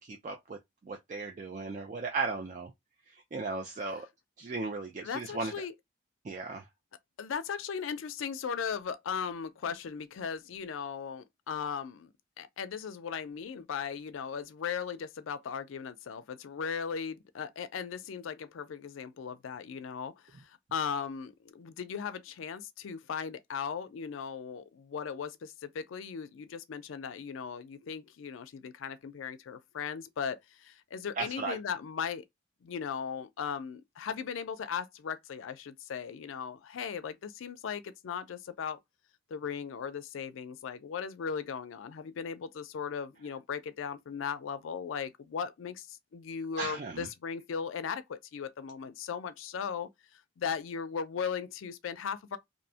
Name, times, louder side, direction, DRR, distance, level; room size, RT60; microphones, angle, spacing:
voice 1, 0.1-0.6 0.9-2.7 3.1-4.1 4.4-5.5 6.2-6.7 31.2-31.6 46.6-47.1, right 3 dB, 40° right, 0.3 m, -36 dB
voice 2, 5.0-5.7 7.2-32.2 32.6-38.8 39.3-52.4, left 6 dB, 85° left, 0.4 m, -37 dB
2.6 x 2.1 x 2.6 m
head